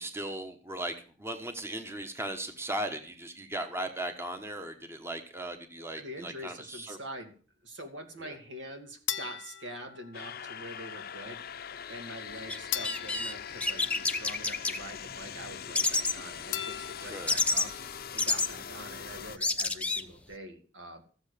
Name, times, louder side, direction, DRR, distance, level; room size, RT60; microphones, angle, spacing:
voice 1, 0.0-7.0 8.2-8.4 17.0-17.3, right 1 dB, 15° right, 7 dB, 1.2 m, -37 dB
voice 2, 6.0-7.3 7.6-17.7 18.1-21.0, equal, 75° right, 5 dB, 2.7 m, -45 dB
sound 1, 9.1-10.6 12.7-14.6 16.5-17.6, left 11 dB, 90° left, 0.7 m, -39 dB
sound 2, 10.1-19.4, left 8 dB, 55° left, 0.7 m, -42 dB
sound 3, 12.5-12.6 12.8-13.3 13.6-14.8 15.7-16.1 17.3-17.6 18.2-18.5 19.1-19.2 19.4-20.0, left 3 dB, 5° left, 0.8 m, -28 dB
13.5 x 8.1 x 6.8 m, 0.39 s
head